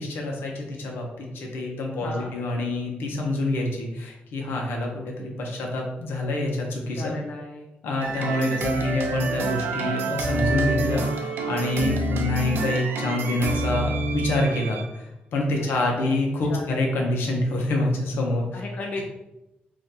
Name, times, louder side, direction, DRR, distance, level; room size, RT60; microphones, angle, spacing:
voice 1, 0.0-7.1 7.8-18.5, left 2 dB, 80° left, 0 dB, 0.7 m, -27 dB
voice 2, 2.0-2.3 6.9-7.7 15.6-15.7 16.0-16.2 16.5-16.7 18.5-19.1, left 2 dB, 45° left, 0 dB, 0.4 m, -35 dB
sound 1, 8.0-14.9, right 2 dB, 75° right, 0.4 m, -27 dB
2.7 x 2.5 x 3.7 m, 0.94 s
wide cardioid pair, 150°, 4 cm